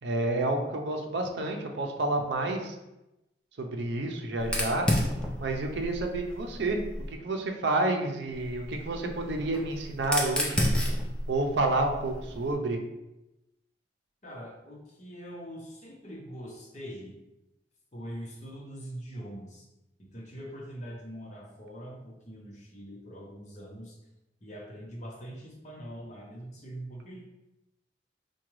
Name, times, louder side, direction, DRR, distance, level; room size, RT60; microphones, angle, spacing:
voice 1, 0.0-2.8 3.6-4.9 5.4-6.8 7.2-10.7 11.3-12.8, right 2 dB, 75° right, 3 dB, 0.5 m, -29 dB
Fire, 4.4-7.1 8.3-12.5, equal, 5° left, 0.4 m, -31 dB
voice 2, 14.2-17.1 17.9-19.7 20.0-24.0 24.4-27.2, equal, 40° left, -2 dB, 0.8 m, -43 dB
4.7 x 2.2 x 3.1 m, 0.95 s
head